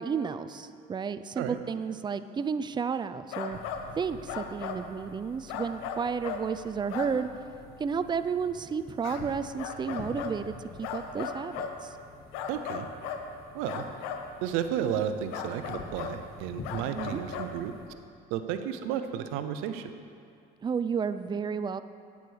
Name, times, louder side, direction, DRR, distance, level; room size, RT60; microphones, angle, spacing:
voice 1, 0.0-3.6 4.0-7.3 7.8-11.9 16.9-17.2 20.6-21.8, right 6 dB, 20° right, 12 dB, 0.4 m, -32 dB
sound 1, 3.3-3.9 4.3-4.8 5.5-6.5 6.9-7.2 9.0-9.2 9.6-10.4 10.8-11.8 12.3-13.2 13.7-14.2 15.3-16.2 16.6-17.5, left 7 dB, 90° left, 0.8 m, -36 dB
sound 2, 3.5-17.9, left 3 dB, 50° left, 1.3 m, -48 dB
voice 2, 12.5-12.9 13.5-13.9 14.4-17.7 18.3-19.9, right 9 dB, 85° right, 9 dB, 0.7 m, -32 dB
8.5 x 8.1 x 6.3 m, 2.4 s
supercardioid pair, 95°, 20 cm